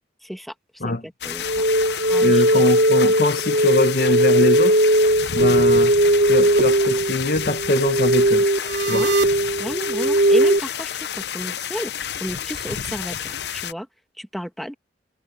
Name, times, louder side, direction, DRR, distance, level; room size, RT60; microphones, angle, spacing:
voice 1, 0.2-0.5 0.8-1.6 2.1-2.6 8.9-9.1 9.6-10.9 11.2-13.9 14.2-14.7, equal, ahead, 1.7 m, -32 dB
sound 1, 1.2-13.7, left 9 dB, 70° left, 0.6 m, -30 dB
sound 2, 1.4-10.6, right 1 dB, 75° right, 1.1 m, -18 dB
voice 2, 2.2-4.9 5.3-6.0 6.3-8.5 8.9-9.1, left 2 dB, 55° left, 1.2 m, -22 dB
head